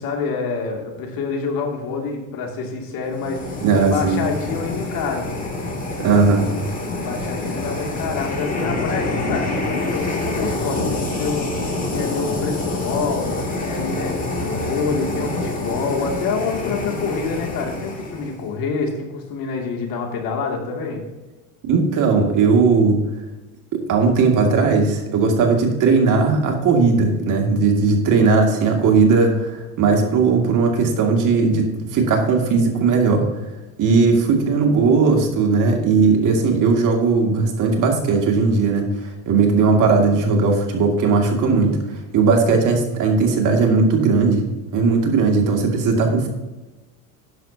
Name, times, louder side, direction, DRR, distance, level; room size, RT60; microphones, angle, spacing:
voice 1, 0.0-5.3 6.9-13.3 13.6-14.1 14.4-21.0, left 5 dB, 55° left, 1 dB, 2.8 m, -27 dB
sound 1, 3.1-18.5, left 2 dB, 20° left, 2.9 m, -26 dB
voice 2, 3.6-4.2 6.0-6.5 21.7-23.0 23.7-33.2 33.8-41.7 42.1-44.5 44.7-46.3, right 4 dB, 45° right, 2 dB, 2.5 m, -17 dB
12.0 x 10.5 x 2.9 m, 1.1 s
supercardioid pair, 115°, 42 cm